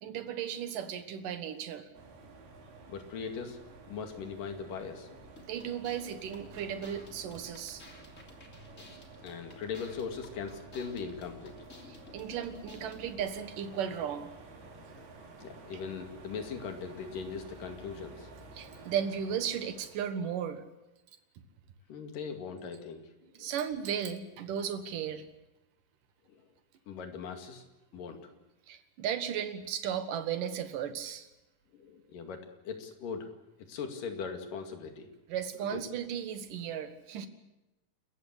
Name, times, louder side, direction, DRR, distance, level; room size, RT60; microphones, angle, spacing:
voice 1, 0.0-1.9 5.5-7.8 11.9-14.3 18.5-20.6 23.3-25.2 27.9-28.0 28.7-31.3 35.3-37.3, right 8 dB, 65° right, 9 dB, 2.9 m, -35 dB
sound 1, 1.9-20.4, right 3 dB, 90° right, 5.2 m, -52 dB
voice 2, 2.9-3.6 3.9-5.3 8.7-11.5 15.0-15.1 15.4-18.3 21.9-23.0 23.4-23.5 26.3-26.4 26.9-27.6 27.9-28.3 31.7-33.3 33.7-35.1 35.7-35.8, left 6 dB, 65° left, 5 dB, 3.8 m, -40 dB
sound 2, 5.4-13.2, left 3 dB, 20° left, 2.9 m, -55 dB
29.0 x 15.0 x 8.2 m, 1.0 s
omnidirectional pair, 4.3 m